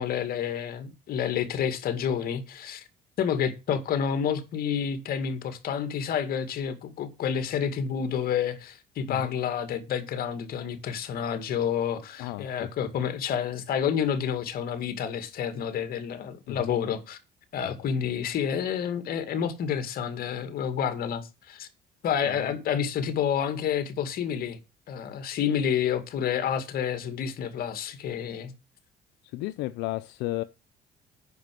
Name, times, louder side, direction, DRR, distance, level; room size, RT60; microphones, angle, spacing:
voice 1, 0.0-2.8 3.2-17.2 17.5-21.7 22.0-24.6 24.9-28.5, left 8 dB, 60° left, 2.2 m, -29 dB
voice 2, 12.2-12.7 16.5-16.7 17.6-17.7 22.2-22.4 29.2-30.4, left 17 dB, 90° left, 0.5 m, -33 dB
9.4 x 5.9 x 7.6 m
cardioid pair, 110°, 17 cm